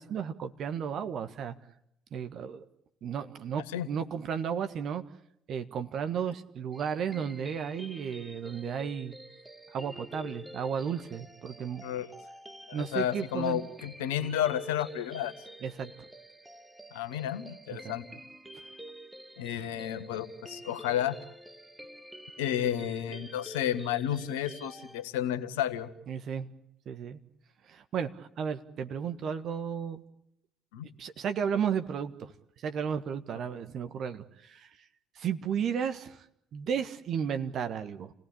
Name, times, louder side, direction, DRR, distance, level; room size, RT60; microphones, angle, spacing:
voice 1, 0.0-1.5 2.1-2.6 3.0-5.0 5.5-9.1 9.7-11.8 12.7-13.6 15.6-15.9 17.8-17.9 26.1-26.5 26.8-27.2 27.7-30.0 31.0-32.3 32.6-34.7 35.1-36.2 36.5-38.1, right 7 dB, 50° right, 8 dB, 1.5 m, -33 dB
sound 1, 6.7-25.0, equal, 10° right, 1.7 m, -48 dB
voice 2, 12.7-15.3 16.9-18.0 19.4-21.2 22.4-25.9 30.7-30.9, left 10 dB, 70° left, 10 dB, 1.5 m, -31 dB
29.5 x 18.5 x 8.6 m, 0.76 s
figure-of-eight pair, 50°, 0 cm